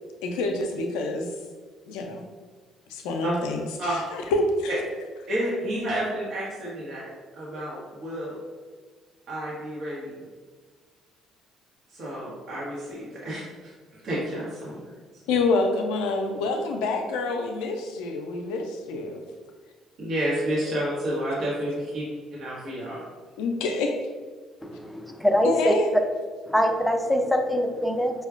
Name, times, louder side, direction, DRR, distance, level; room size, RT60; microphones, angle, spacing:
voice 1, 0.2-1.3 1.9-2.2 2.9-4.7 15.3-19.2 23.4-24.0 25.4-25.9, left 3 dB, 80° left, 3 dB, 0.4 m, -27 dB
voice 2, 5.3-8.4 9.3-10.2 11.9-14.8 20.0-22.1 22.4-23.0, right 1 dB, 60° right, -7 dB, 0.9 m, -30 dB
voice 3, 24.6-26.0 26.5-28.3, equal, 5° left, 5 dB, 0.5 m, -23 dB
4.7 x 2.2 x 2.4 m, 1.5 s
hypercardioid pair, 60°, 0 cm